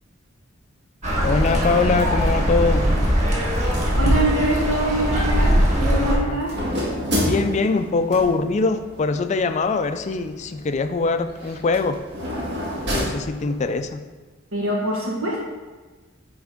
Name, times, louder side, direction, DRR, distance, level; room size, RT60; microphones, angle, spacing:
sound 1, 1.0-6.2, equal, 35° right, 1.4 m, -20 dB
voice 1, 1.2-2.9 6.2-6.4 7.2-12.0 12.9-14.1, left 4 dB, 35° left, 9 dB, 0.3 m, -22 dB
voice 2, 4.0-5.5 5.9-6.5 14.5-15.5, right 1 dB, 90° right, -3 dB, 1.4 m, -24 dB
sound 2, 5.0-13.9, equal, 60° right, 1.7 m, -30 dB
9.6 x 3.5 x 3.6 m, 1.3 s
head